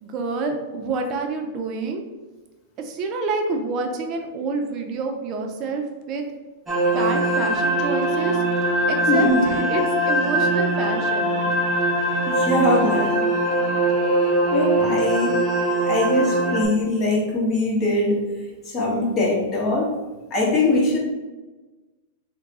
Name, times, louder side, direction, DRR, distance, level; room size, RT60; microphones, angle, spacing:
voice 1, 0.0-2.0 2.8-6.3 6.9-8.4 8.9-11.4, right 3 dB, 40° right, 3 dB, 0.6 m, -28 dB
sound 1, 6.7-16.7, right 1 dB, 15° right, 0.9 m, -22 dB
voice 2, 9.1-9.5 12.3-13.3 14.5-15.4 15.8-18.2 18.6-19.9 20.3-21.0, left 2 dB, 30° left, -4 dB, 1.5 m, -21 dB
3.5 x 2.3 x 4.0 m, 1.2 s
hypercardioid pair, 125°, 0 cm